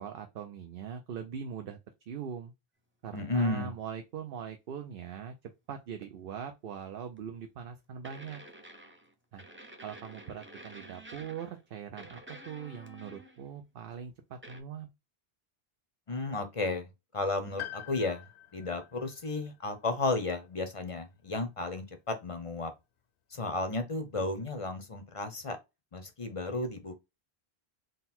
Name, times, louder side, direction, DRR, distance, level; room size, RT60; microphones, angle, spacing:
voice 1, 0.0-1.8 2.1-2.5 3.0-8.4 9.3-9.4 9.8-12.2 12.5-14.9, right 7 dB, 65° right, 0.7 m, -41 dB
voice 2, 3.1-3.7 16.1-16.9 17.1-18.2 18.5-22.7 23.3-25.6 25.9-27.0, left 2 dB, 35° left, 0.6 m, -33 dB
sound 1, 7.2-7.3 8.0-9.1 9.4-11.6 12.0-13.5 14.4-14.6, right 1 dB, 15° right, 0.5 m, -50 dB
Piano, 17.6-21.5 21.7-21.8 23.0-23.1, left 12 dB, 75° left, 0.9 m, -47 dB
3.9 x 2.2 x 4.2 m
omnidirectional pair, 1.1 m